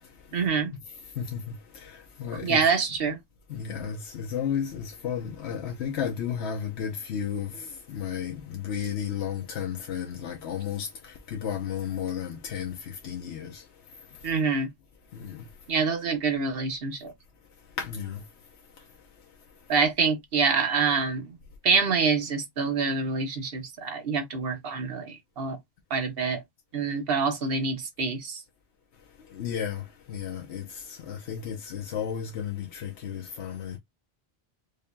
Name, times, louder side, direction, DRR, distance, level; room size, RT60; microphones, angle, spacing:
voice 1, 0.3-0.7 2.4-3.2 14.2-14.7 15.7-17.1 19.7-21.4 21.6-25.6 25.9-26.4 26.7-28.4, right 5 dB, 65° right, 1.2 m, -26 dB
voice 2, 1.7-2.6 3.5-13.6 15.1-15.4 17.8-18.2 29.3-33.8, left 8 dB, 80° left, 1.0 m, -33 dB
5.2 x 2.6 x 2.2 m
omnidirectional pair, 1.1 m